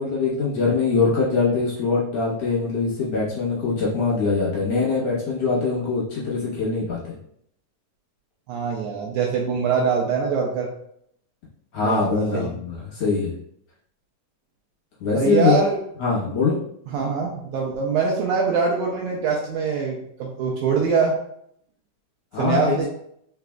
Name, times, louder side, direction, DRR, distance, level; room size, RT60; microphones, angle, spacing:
voice 1, 0.0-7.2 11.7-13.3 15.0-15.6 16.0-16.6 22.3-22.8, left 4 dB, 60° left, -6 dB, 1.8 m, -23 dB
voice 2, 8.5-10.7 11.8-12.5 15.1-15.8 16.9-21.2 22.4-22.9, right 5 dB, 85° right, -1 dB, 1.7 m, -23 dB
4.9 x 3.8 x 2.2 m, 0.70 s
omnidirectional pair, 4.0 m